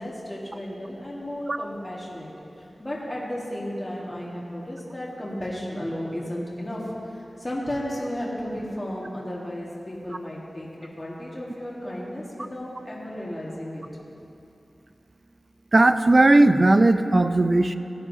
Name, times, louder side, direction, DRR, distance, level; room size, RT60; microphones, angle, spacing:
voice 1, 0.0-13.8, equal, 20° left, -5 dB, 1.6 m, -34 dB
voice 2, 15.7-17.8, right 2 dB, 40° right, 10 dB, 0.4 m, -17 dB
17.0 x 9.9 x 2.7 m, 2.8 s
wide cardioid pair, 95°, 0 cm